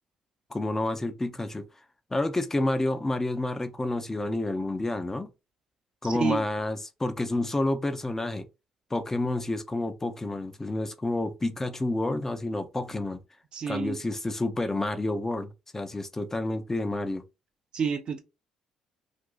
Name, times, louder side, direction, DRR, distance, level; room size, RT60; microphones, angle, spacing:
voice 1, 0.5-1.6 2.1-5.3 6.0-8.5 8.9-13.2 13.7-17.2, left 2 dB, 20° left, 0.6 m, -29 dB
voice 2, 6.0-6.4 13.5-14.0 17.7-18.2, right 6 dB, 50° right, 0.5 m, -29 dB
2.6 x 2.3 x 3.8 m
hypercardioid pair, 55°, 2 cm